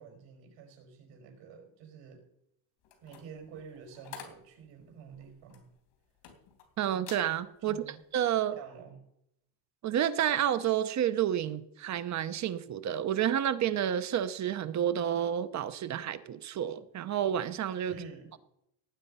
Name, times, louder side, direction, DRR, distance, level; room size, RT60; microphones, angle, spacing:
voice 1, 0.0-2.2 3.0-5.6 7.6-8.0 8.5-9.0 17.9-18.3, right 6 dB, 80° right, 4 dB, 5.8 m, -48 dB
sound 1, 2.8-6.7 7.0-7.3 7.8-8.0, left 8 dB, 85° left, 3.5 m, -50 dB
voice 2, 6.8-8.6 9.8-17.9, right 10 dB, 40° right, 12 dB, 0.8 m, -30 dB
18.0 x 9.0 x 5.6 m, 0.77 s
cardioid pair, 180°, 44 cm